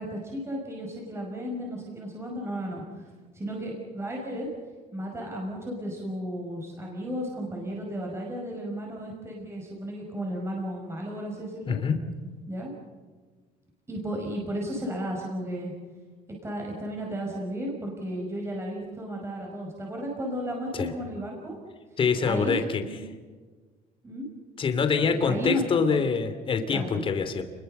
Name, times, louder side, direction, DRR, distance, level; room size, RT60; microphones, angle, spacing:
voice 1, 0.0-4.5 4.9-11.8 12.5-12.7 13.9-15.7 16.4-21.6 21.9-23.0 24.0-24.3 25.0-25.8 26.7-27.0, equal, 15° right, -1 dB, 5.8 m, -34 dB
voice 2, 11.7-12.0 20.8-20.9 22.0-22.8 24.6-27.4, left 5 dB, 35° left, 8 dB, 2.9 m, -25 dB
30.0 x 22.0 x 6.8 m, 1.4 s
cardioid pair, 140°, 16 cm